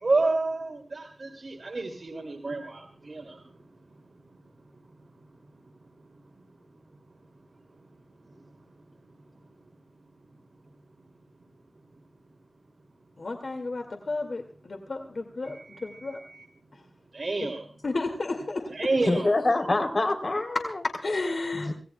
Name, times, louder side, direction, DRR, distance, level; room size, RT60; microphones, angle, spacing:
voice 1, 0.0-3.4 15.5-16.4 17.1-17.6 18.7-19.3, right 3 dB, 55° right, 2 dB, 2.8 m, -29 dB
voice 2, 13.2-16.2 17.3-17.5 17.8-18.7 21.0-21.7, left 3 dB, 65° left, 4 dB, 2.2 m, -32 dB
voice 3, 19.1-20.8 21.6-21.7, left 2 dB, 45° left, 6 dB, 3.4 m, -25 dB
26.0 x 17.5 x 2.3 m, 0.38 s
wide cardioid pair, 80°, 0 cm